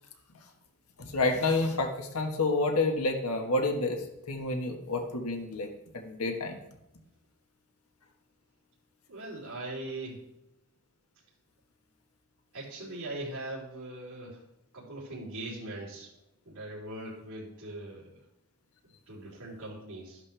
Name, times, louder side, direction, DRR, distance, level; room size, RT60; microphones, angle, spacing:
voice 1, 1.0-5.7 5.9-6.6, left 2 dB, 85° left, 3 dB, 1.5 m, -29 dB
voice 2, 9.1-10.2 12.5-14.4 14.7-16.1 16.5-18.2 19.1-20.2, right 1 dB, 80° right, -8 dB, 3.7 m, -40 dB
13.0 x 11.0 x 3.4 m, 0.85 s
head